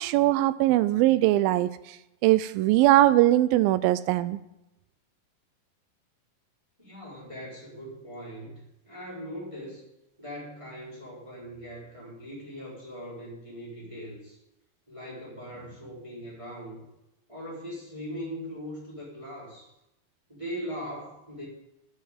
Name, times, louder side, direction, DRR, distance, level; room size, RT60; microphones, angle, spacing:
voice 1, 0.0-2.0 2.2-4.4, right 15 dB, 90° right, 14 dB, 2.4 m, -21 dB
voice 2, 6.8-9.8 10.2-14.4 14.9-16.8 17.3-19.7 20.3-21.5, equal, 10° right, -7 dB, 4.2 m, -40 dB
8.9 x 8.4 x 9.0 m, 0.90 s
omnidirectional pair, 4.1 m